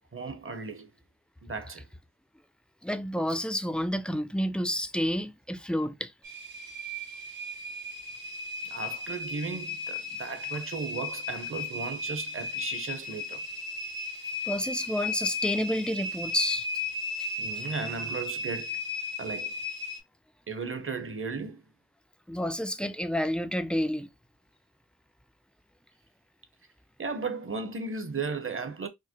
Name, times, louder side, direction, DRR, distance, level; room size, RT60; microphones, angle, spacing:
voice 1, 0.1-0.9 1.4-1.8 8.7-13.4 17.4-18.8 19.2-19.5 20.5-21.6 27.0-28.9, right 4 dB, 30° right, 0.8 m, -35 dB
voice 2, 2.8-6.1 14.5-16.7 17.2-17.3 22.3-24.1, equal, 5° left, 0.3 m, -29 dB
sound 1, 6.2-20.0, left 3 dB, 55° right, 1.2 m, -35 dB
4.6 x 2.1 x 2.9 m
wide cardioid pair, 85°, 40 cm